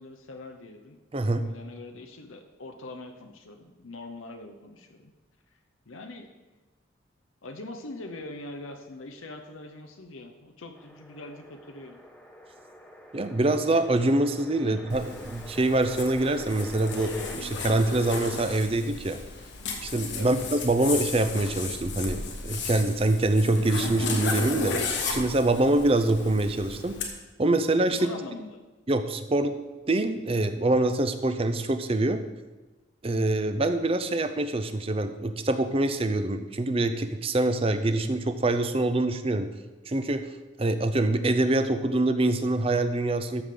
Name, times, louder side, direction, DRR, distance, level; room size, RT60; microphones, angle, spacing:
voice 1, 0.0-1.0 1.4-5.1 5.9-6.3 7.4-12.0 14.6-14.8 20.1-20.4 27.9-28.6, left 2 dB, 85° left, 5 dB, 0.8 m, -42 dB
voice 2, 1.1-1.4 13.1-19.2 19.8-26.9 27.4-28.1 28.9-29.5 29.9-32.2 33.0-39.5 39.9-40.2 40.6-43.4, right 2 dB, 30° right, 9 dB, 0.5 m, -25 dB
sound 1, 10.7-17.4, equal, 5° left, 0.7 m, -47 dB
Zipper (clothing), 14.9-27.1, left 3 dB, 60° left, 1.2 m, -34 dB
13.0 x 6.6 x 3.8 m, 1.2 s
head